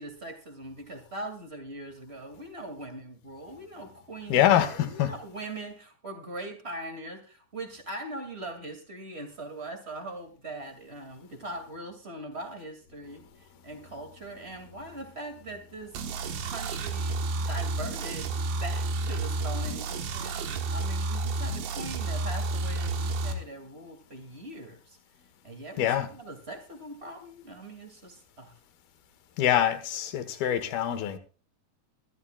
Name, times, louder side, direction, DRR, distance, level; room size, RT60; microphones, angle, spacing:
voice 1, 0.0-4.4 4.7-25.0 25.4-28.6, right 2 dB, 20° right, 1.9 m, -41 dB
voice 2, 4.3-5.1 25.8-26.1 29.4-31.2, left 11 dB, 75° left, 3.1 m, -24 dB
sound 1, 15.9-23.3, right 3 dB, 70° right, 3.1 m, -31 dB
23.0 x 13.0 x 2.4 m
omnidirectional pair, 4.3 m